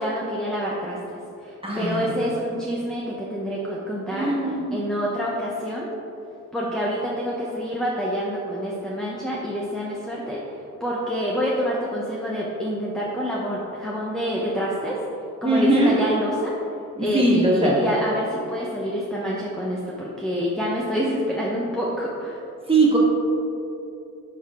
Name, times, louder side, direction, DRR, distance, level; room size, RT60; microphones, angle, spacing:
voice 1, 0.0-5.9 6.5-10.4 10.8-15.0 15.4-16.5 17.0-22.4, equal, ahead, -5 dB, 0.8 m, -27 dB
voice 2, 1.6-2.1 4.1-4.8 15.4-16.0 17.0-17.8 22.7-23.0, right 2 dB, 15° right, -4 dB, 1.7 m, -20 dB
10.0 x 5.7 x 3.7 m, 2.7 s
wide cardioid pair, 135°, 33 cm